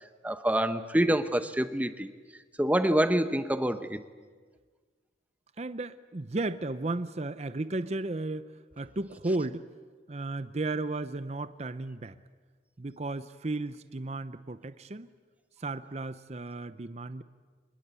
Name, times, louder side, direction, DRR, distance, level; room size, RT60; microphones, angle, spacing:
voice 1, 0.2-2.1 2.6-4.0, right 1 dB, 10° right, 11 dB, 0.8 m, -26 dB
voice 2, 5.6-8.5 8.8-9.7 10.1-12.2 12.8-15.1 15.6-17.2, right 2 dB, 35° right, 13 dB, 0.6 m, -34 dB
25.0 x 21.5 x 8.3 m, 1.5 s
head